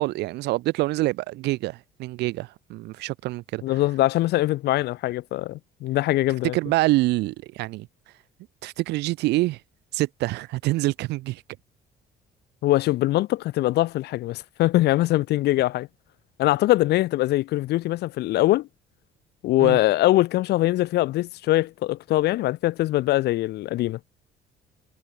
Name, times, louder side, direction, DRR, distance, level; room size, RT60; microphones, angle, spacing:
voice 1, 0.0-3.6 6.5-7.9 8.6-9.6 9.9-11.4 19.6-19.8, right 19 dB, 85° right, 1.6 m, -26 dB
voice 2, 3.6-6.5 12.6-15.9 16.4-18.7 19.4-24.0, left 16 dB, 80° left, 3.0 m, -22 dB
cardioid pair, 110°, 17 cm